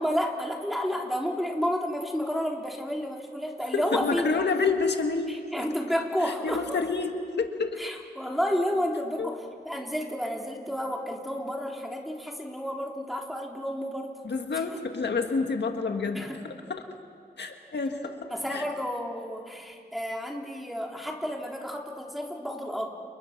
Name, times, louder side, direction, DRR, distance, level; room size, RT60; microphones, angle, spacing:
voice 1, 0.0-4.4 5.3-6.8 7.8-14.1 16.1-16.4 18.3-22.9, equal, ahead, -1 dB, 3.6 m, -31 dB
voice 2, 3.7-5.6 6.2-7.8 9.2-9.3 14.2-16.8 17.4-18.6, left 4 dB, 75° left, 4 dB, 1.8 m, -29 dB
29.5 x 29.5 x 6.0 m, 2.2 s
wide cardioid pair, 105°, 18 cm